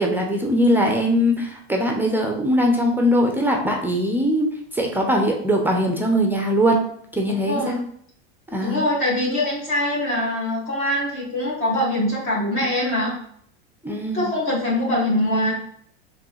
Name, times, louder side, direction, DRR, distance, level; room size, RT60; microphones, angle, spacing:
voice 1, 0.0-6.8 7.1-7.7 8.5-8.8 13.8-14.3, equal, 5° right, 2 dB, 0.5 m, -21 dB
voice 2, 7.4-7.8 8.6-13.1 14.1-15.5, left 1 dB, 40° left, -6 dB, 1.8 m, -23 dB
5.0 x 3.2 x 3.1 m, 0.66 s
supercardioid pair, 120°, 30 cm